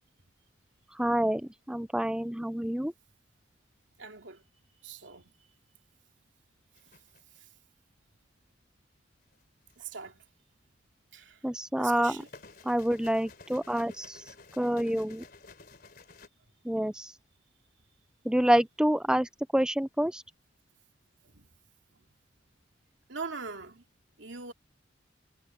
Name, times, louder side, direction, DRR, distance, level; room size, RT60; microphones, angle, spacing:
voice 1, 1.0-2.9 11.4-12.2 12.6-14.2 14.6-15.2 16.6-17.1 18.2-20.2, equal, 5° right, 0.5 m, -27 dB
voice 2, 4.0-4.4 4.8-5.3 7.3-7.5 9.8-10.2 11.1-11.5 11.8-12.3 21.2-21.5 23.1-23.8 24.2-24.5, right 4 dB, 70° right, 2.7 m, -42 dB
sound 1, 6.7-7.4 9.3-10.1 11.9-16.3, left 3 dB, 50° left, 3.4 m, -53 dB
head